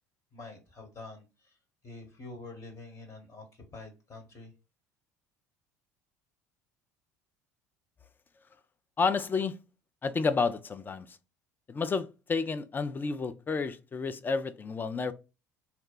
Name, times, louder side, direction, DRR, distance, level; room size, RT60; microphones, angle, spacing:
voice 1, 0.3-1.6 1.8-4.5, left 2 dB, 40° left, 1.2 m, -46 dB
voice 2, 9.0-9.6 10.0-11.2 11.7-15.1, left 4 dB, 25° left, 0.4 m, -30 dB
2.8 x 2.2 x 3.9 m
figure-of-eight pair, 65°, 8 cm